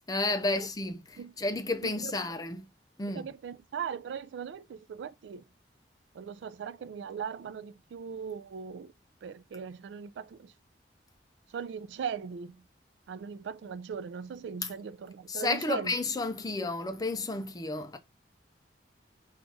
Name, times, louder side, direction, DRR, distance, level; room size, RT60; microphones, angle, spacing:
voice 1, 0.1-2.7 3.0-3.3 14.6-14.7 15.3-18.0, left 2 dB, 20° left, 0.5 m, -32 dB
voice 2, 1.8-2.1 3.1-5.4 6.1-8.9 9.2-10.5 11.5-12.6 13.1-15.9, right 7 dB, 75° right, 0.3 m, -39 dB
3.9 x 2.5 x 4.7 m
head